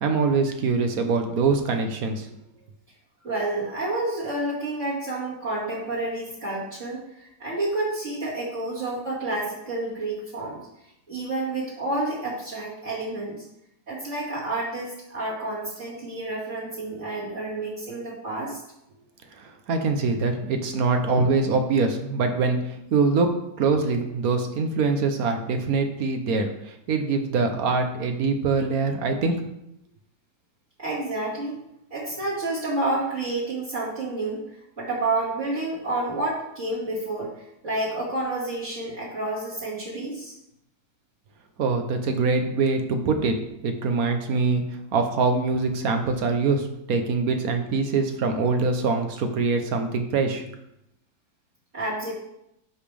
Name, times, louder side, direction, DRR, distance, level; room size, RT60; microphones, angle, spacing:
voice 1, 0.0-2.3 19.4-23.3 23.6-29.4 41.6-43.3 43.6-44.6 44.9-50.4, right 4 dB, 60° right, 6 dB, 1.2 m, -24 dB
voice 2, 3.2-10.6 11.1-13.4 13.9-18.6 30.8-31.6 31.9-34.4 34.8-37.3 37.6-40.3 44.1-44.2 51.7-52.1, right 2 dB, 45° right, -7 dB, 2.4 m, -29 dB
11.0 x 5.3 x 3.4 m, 0.82 s
omnidirectional pair, 1.9 m